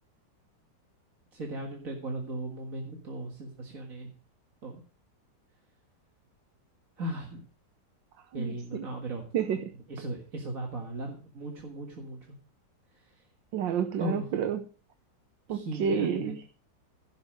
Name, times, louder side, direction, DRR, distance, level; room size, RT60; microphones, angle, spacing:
voice 1, 1.3-4.1 4.6-4.8 7.0-7.4 8.3-9.3 9.9-12.3 14.0-14.3 15.5-16.4, right 1 dB, 50° right, 1 dB, 2.1 m, -37 dB
voice 2, 8.3-8.8 9.3-9.6 13.5-14.6 15.5-16.4, right 7 dB, 85° right, 7 dB, 1.6 m, -30 dB
16.0 x 7.0 x 5.2 m, 0.39 s
omnidirectional pair, 2.0 m